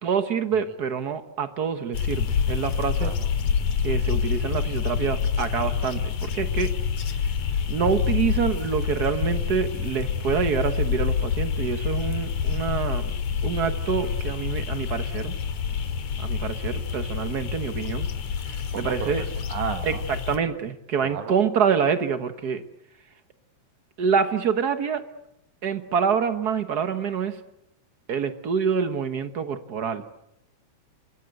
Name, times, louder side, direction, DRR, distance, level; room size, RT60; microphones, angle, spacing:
voice 1, 0.0-3.1 3.8-6.7 7.7-13.1 13.4-15.3 16.2-18.1 18.4-19.2 19.8-22.6 24.0-25.0 25.6-27.4 28.1-30.0, right 6 dB, 60° right, 10 dB, 1.0 m, -26 dB
sound 1, 1.9-20.4, left 7 dB, 70° left, 3.1 m, -27 dB
voice 2, 18.7-20.0 21.0-21.3, right 6 dB, 75° right, 7 dB, 3.7 m, -33 dB
29.0 x 21.5 x 8.0 m, 0.83 s
omnidirectional pair, 3.5 m